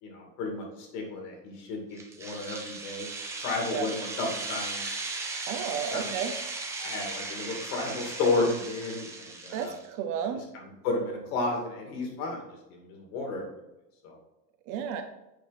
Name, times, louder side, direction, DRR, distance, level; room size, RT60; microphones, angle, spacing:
voice 1, 0.0-3.1 3.4-4.8 5.9-6.1 6.8-9.7 10.5-13.5 14.0-14.2, left 3 dB, 60° left, 1 dB, 2.6 m, -32 dB
sound 1, 2.0-9.9, right 3 dB, 5° right, 0.4 m, -37 dB
voice 2, 5.5-6.3 9.5-10.4 14.7-15.0, right 7 dB, 40° right, 7 dB, 0.7 m, -32 dB
8.5 x 4.9 x 4.1 m, 0.96 s
supercardioid pair, 145°, 49 cm